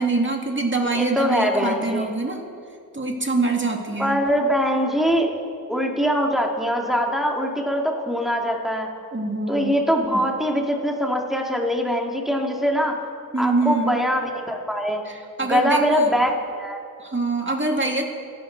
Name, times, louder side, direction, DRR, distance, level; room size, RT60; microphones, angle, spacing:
voice 1, 0.0-2.4 2.9-4.2 9.1-9.8 13.3-14.0 15.1-16.1 17.0-18.0, right 3 dB, 30° right, 1 dB, 2.2 m, -24 dB
voice 2, 0.9-2.1 4.0-5.3 5.7-8.9 9.5-12.9 13.4-15.0 15.4-16.3 16.6-16.8, equal, ahead, 0 dB, 2.2 m, -22 dB
25.5 x 11.0 x 4.0 m, 2.4 s
wide cardioid pair, 45°, 36 cm